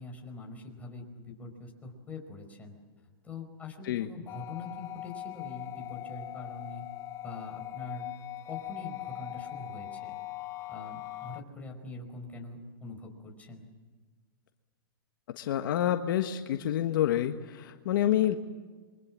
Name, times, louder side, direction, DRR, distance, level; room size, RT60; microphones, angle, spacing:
voice 1, 0.0-2.7 3.2-6.9 7.2-8.1 8.4-10.1 10.7-13.7, left 3 dB, 10° left, 1 dB, 5.0 m, -44 dB
sound 1, 4.3-11.4, left 14 dB, 25° left, 1.1 m, -41 dB
voice 2, 15.4-18.4, left 11 dB, 60° left, 7 dB, 1.4 m, -28 dB
28.0 x 23.5 x 7.4 m, 1.4 s
hypercardioid pair, 135°, 12 cm